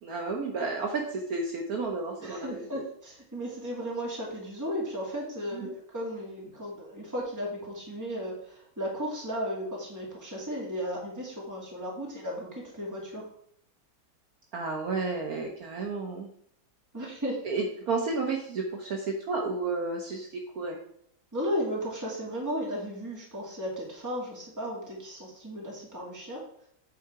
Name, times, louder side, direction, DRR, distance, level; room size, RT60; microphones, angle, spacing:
voice 1, 0.0-2.8 5.5-5.7 14.5-16.3 17.4-20.3 20.5-20.8, right 3 dB, 60° right, 1 dB, 1.3 m, -32 dB
voice 2, 2.2-13.3 16.9-17.5 21.3-26.4, equal, 10° right, -3 dB, 2.1 m, -35 dB
8.5 x 4.2 x 4.7 m, 0.68 s
omnidirectional pair, 1.9 m